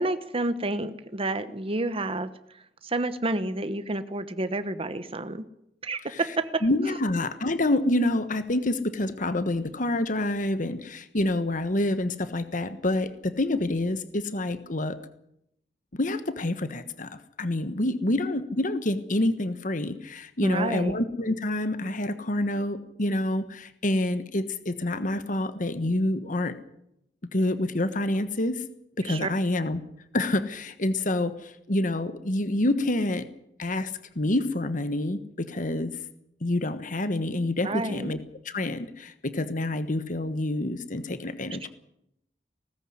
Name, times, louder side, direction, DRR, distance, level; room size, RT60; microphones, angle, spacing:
voice 1, 0.0-2.3 2.8-5.4 5.8-6.7 20.4-21.0 29.1-29.3 37.6-38.1, right 2 dB, 35° right, 11 dB, 1.1 m, -29 dB
voice 2, 6.6-15.0 15.9-26.5 27.3-28.6 29.0-29.8 30.1-33.3 33.6-35.9 36.4-38.2 38.4-41.7, left 1 dB, 45° left, 11 dB, 1.3 m, -27 dB
18.5 x 14.5 x 9.8 m, 0.77 s
head